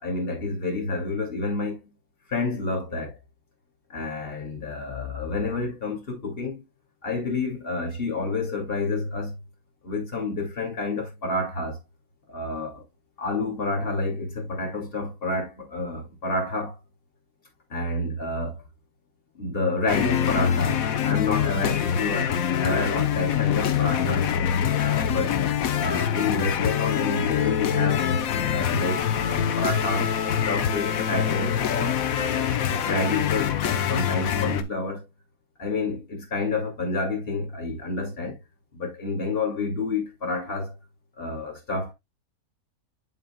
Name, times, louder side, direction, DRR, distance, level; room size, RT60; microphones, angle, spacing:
voice 1, 0.0-1.9 2.3-3.2 3.9-6.6 7.0-9.3 9.8-11.8 12.3-12.8 13.2-16.8 17.7-18.6 19.3-24.3 24.8-25.4 25.8-28.1 28.5-32.5 32.8-35.0 35.6-38.4 38.7-40.7 41.2-41.9, left 3 dB, 40° left, 2.7 m, -29 dB
sound 1, 19.9-34.6, left 8 dB, 70° left, 1.2 m, -24 dB
8.1 x 7.3 x 2.3 m
omnidirectional pair, 1.5 m